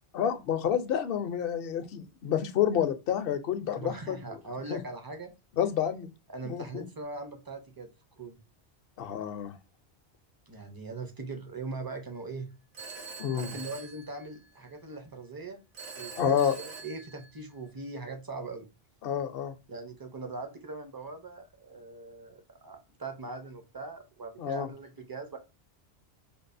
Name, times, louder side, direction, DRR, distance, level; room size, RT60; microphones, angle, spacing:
voice 1, 0.1-4.2 4.7-4.8 5.6-6.1 6.4-6.8 9.0-9.6 13.2-13.6 16.2-16.6 19.0-19.5 24.4-24.7, left 9 dB, 65° left, 0.7 m, -29 dB
voice 2, 3.7-5.3 6.3-7.9 8.2-8.4 10.5-12.5 13.3-15.6 16.0-18.7 19.7-25.4, right 3 dB, 30° right, 0.5 m, -41 dB
Telephone, 12.7-14.7 15.7-17.7, right 4 dB, 70° right, 1.2 m, -45 dB
5.2 x 2.4 x 2.5 m
omnidirectional pair, 1.1 m